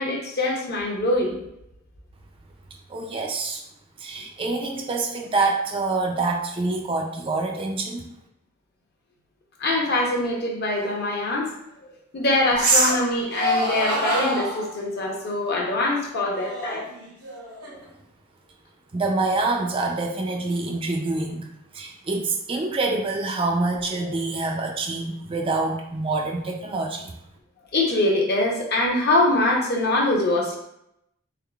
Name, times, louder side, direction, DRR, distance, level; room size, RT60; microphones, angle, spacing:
voice 1, 0.0-1.4 9.6-11.5 12.1-16.8 27.7-30.6, left 2 dB, 50° left, -1 dB, 0.8 m, -23 dB
voice 2, 2.9-3.6 4.0-8.0 18.9-21.4 21.7-27.1, right 3 dB, 25° right, 1 dB, 0.4 m, -26 dB
sound 1, 10.8-10.9 12.5-13.1 13.3-14.7 16.3-17.9, right 1 dB, 85° right, 1.0 m, -24 dB
3.7 x 3.6 x 2.3 m, 0.79 s
head